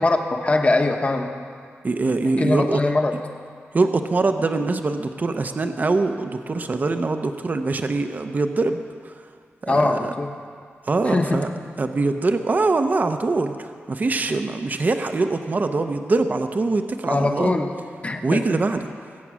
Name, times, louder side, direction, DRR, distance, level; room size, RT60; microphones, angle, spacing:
voice 1, 0.0-1.3 2.2-3.1 9.7-10.3 11.0-11.4 14.3-14.4 17.1-17.7 18.0-18.4, left 2 dB, 30° left, 4 dB, 1.1 m, -22 dB
voice 2, 1.8-2.8 3.7-9.1 9.6-10.1 10.9-11.5 11.8-17.5 18.2-18.8, right 3 dB, 40° right, 7 dB, 0.7 m, -23 dB
22.0 x 8.6 x 6.2 m, 2.1 s
wide cardioid pair, 135°, 5 cm